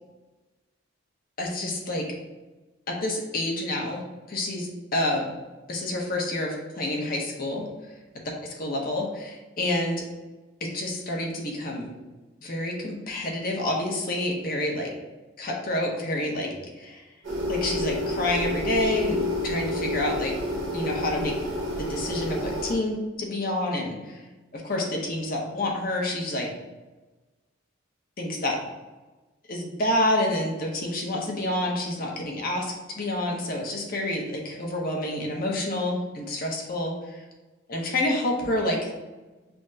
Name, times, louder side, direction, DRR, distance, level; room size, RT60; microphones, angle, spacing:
voice 1, 1.4-2.1 2.9-4.0 4.3-5.3 5.7-7.6 8.4-10.0 10.6-11.9 12.4-14.9 15.4-17.0 17.5-20.3 20.7-21.3 21.8-24.2 24.5-26.5 28.2-28.6 29.5-37.2 37.7-38.9, left 1 dB, 45° left, 0 dB, 0.7 m, -28 dB
sound 1, 17.2-22.7, left 1 dB, 70° right, 1.2 m, -29 dB
5.6 x 2.1 x 2.6 m, 1.2 s
head